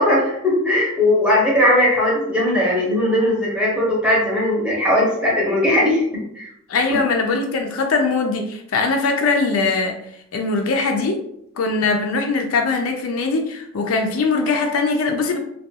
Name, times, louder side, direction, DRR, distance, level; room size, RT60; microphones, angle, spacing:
voice 1, 0.0-6.0 6.4-6.5, left 1 dB, 5° right, -5 dB, 0.7 m, -18 dB
voice 2, 6.7-9.9 10.3-11.2 11.6-15.4, left 4 dB, 75° left, 3 dB, 0.4 m, -21 dB
2.3 x 2.2 x 2.7 m, 0.74 s
head